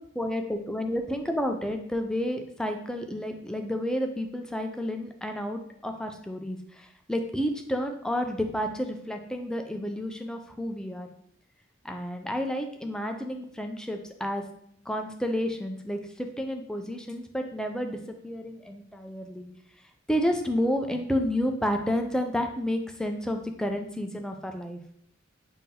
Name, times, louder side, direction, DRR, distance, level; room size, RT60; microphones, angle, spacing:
voice 1, 0.0-11.1 11.8-14.4 14.9-18.0 18.2-19.5 20.1-24.8, equal, 5° left, 5 dB, 0.3 m, -30 dB
5.5 x 2.6 x 2.8 m, 0.67 s
head